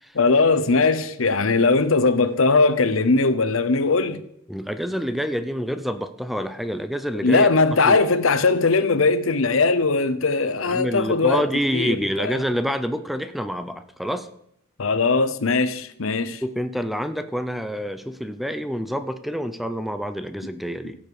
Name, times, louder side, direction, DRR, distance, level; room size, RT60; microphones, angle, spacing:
voice 1, 0.1-4.2 7.2-11.4 11.7-12.4 14.8-16.4, left 3 dB, 70° left, 0.8 m, -20 dB
voice 2, 4.5-7.5 7.8-8.0 10.7-14.3 16.4-21.0, equal, ahead, 0.5 m, -27 dB
16.0 x 7.4 x 4.8 m
head